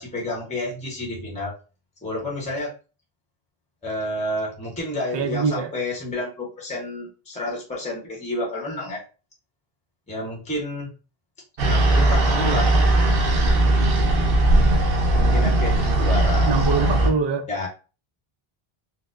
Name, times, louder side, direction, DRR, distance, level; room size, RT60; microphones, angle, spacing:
voice 1, 0.0-1.5 2.0-2.7 3.8-9.0 10.1-10.9 11.6-12.7 15.1-16.5 17.5-17.7, left 1 dB, 5° left, 0.8 m, -30 dB
voice 2, 5.1-5.7 16.5-17.5, right 5 dB, 50° right, 0.3 m, -24 dB
sound 1, 11.6-17.1, right 1 dB, 65° right, 0.9 m, -18 dB
4.2 x 2.1 x 2.5 m
omnidirectional pair, 1.0 m